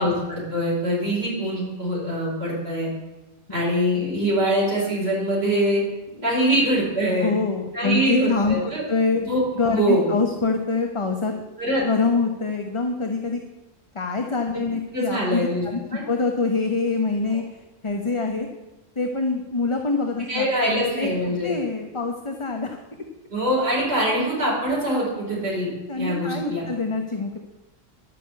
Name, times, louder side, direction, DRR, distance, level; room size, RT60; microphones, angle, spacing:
voice 1, 0.0-2.9 3.5-5.8 6.2-7.3 7.7-8.8 9.2-9.4 9.7-10.1 11.6-11.8 14.5-14.6 14.9-15.6 15.9-16.0 20.3-21.5 23.3-26.6, equal, 50° right, -6 dB, 5.3 m, -23 dB
voice 2, 6.1-6.5 7.2-9.2 9.5-11.3 11.8-13.4 13.9-18.5 19.0-21.1 21.4-22.8 25.9-27.4, left 3 dB, 25° left, 4 dB, 1.0 m, -25 dB
11.0 x 9.5 x 8.2 m, 1.1 s
omnidirectional pair, 1.3 m